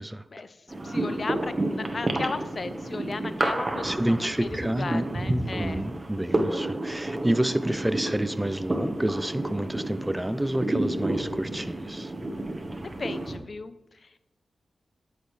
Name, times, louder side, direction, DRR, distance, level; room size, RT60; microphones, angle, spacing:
voice 1, 0.3-4.5 4.8-5.8 13.0-14.2, left 4 dB, 55° left, 13 dB, 0.5 m, -36 dB
sound 1, 0.7-13.4, right 1 dB, 35° right, 1.3 m, -31 dB
voice 2, 3.8-12.1, right 1 dB, 15° right, 15 dB, 0.4 m, -29 dB
11.5 x 6.5 x 3.3 m, 0.93 s
cardioid pair, 50°, 0 cm